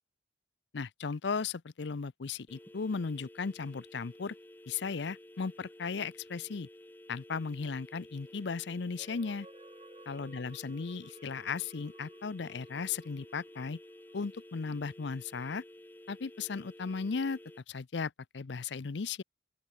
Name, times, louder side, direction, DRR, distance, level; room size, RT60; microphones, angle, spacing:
voice 1, 0.7-4.4 4.7-6.7 7.1-9.5 10.1-13.8 14.1-15.6 16.1-17.4 17.7-19.2, left 5 dB, 70° left, 0.6 m, -36 dB
sound 1, 2.5-17.6, left 1 dB, 10° left, 1.6 m, -53 dB
sound 2, 9.0-14.7 15.2-15.3, right 3 dB, 30° right, 1.0 m, -57 dB
open air
head